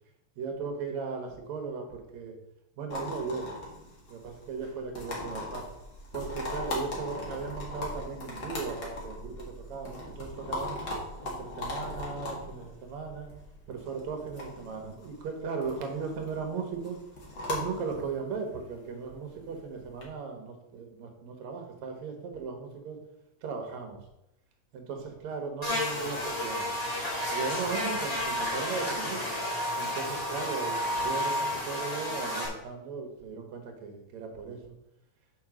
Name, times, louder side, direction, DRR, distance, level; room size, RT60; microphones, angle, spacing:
voice 1, 0.4-2.4 2.8-3.5 4.1-5.6 6.1-10.8 11.2-13.3 13.7-17.0 17.5-23.0 23.4-24.0 24.7-26.7 27.3-29.3 29.7-34.7, right 5 dB, 75° right, 4 dB, 2.5 m, -37 dB
sound 1, 2.9-20.0, left 1 dB, 40° left, 2.1 m, -39 dB
Buzz, 25.6-32.5, left 1 dB, 15° left, 1.8 m, -31 dB
6.3 x 4.9 x 6.1 m, 0.87 s
omnidirectional pair, 3.3 m